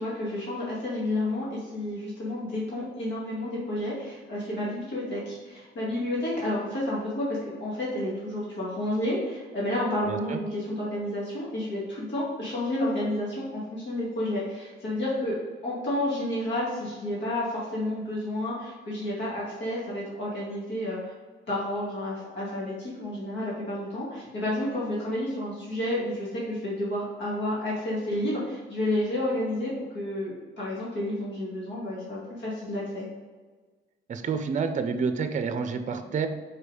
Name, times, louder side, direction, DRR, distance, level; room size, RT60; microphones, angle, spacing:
voice 1, 0.0-15.4 15.6-21.1 21.5-33.1, left 1 dB, 75° left, -6 dB, 2.0 m, -30 dB
voice 2, 10.0-10.4 34.1-36.3, right 5 dB, 40° right, 8 dB, 0.6 m, -29 dB
5.2 x 4.6 x 4.9 m, 1.4 s
wide cardioid pair, 155°, 19 cm